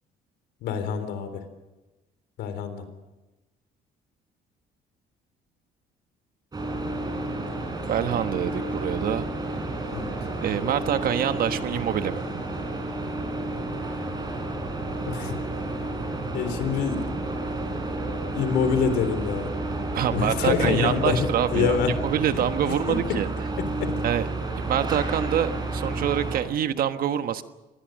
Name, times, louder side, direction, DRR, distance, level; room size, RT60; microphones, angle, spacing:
voice 1, 0.6-1.4 2.4-2.8 9.9-10.1 15.1-15.3 16.3-17.0 18.3-19.5 20.1-21.9 22.6-23.2 23.6-23.9, left 7 dB, 80° left, 9 dB, 3.7 m, -26 dB
sound 1, 6.5-26.4, right 2 dB, 25° right, 5.6 m, -31 dB
voice 2, 7.9-9.6 10.4-12.3 19.9-21.8 22.0-23.3 24.0-24.3 24.6-27.4, right 9 dB, 60° right, 10 dB, 1.3 m, -26 dB
26.0 x 20.0 x 6.5 m, 1.1 s
cardioid pair, 110°, 17 cm